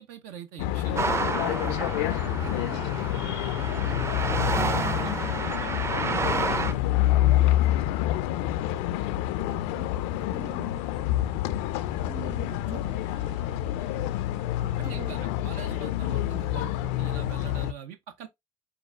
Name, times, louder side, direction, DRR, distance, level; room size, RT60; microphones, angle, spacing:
voice 1, 0.0-1.3 6.3-6.5 8.7-8.9 14.0-14.1 14.8-18.3, right 9 dB, 80° right, 0.7 m, -43 dB
sound 1, 0.6-17.7, left 14 dB, 85° left, 0.4 m, -27 dB
sound 2, 0.7-17.7, right 5 dB, 55° right, 2.3 m, -53 dB
sound 3, 0.9-6.7, right 4 dB, 20° right, 0.5 m, -30 dB
voice 2, 1.4-5.5 6.0-8.0 9.5-10.8 11.7-13.1 14.6-15.2, right 6 dB, 40° right, 1.9 m, -46 dB
6.7 x 2.4 x 2.4 m
supercardioid pair, 105°, 13 cm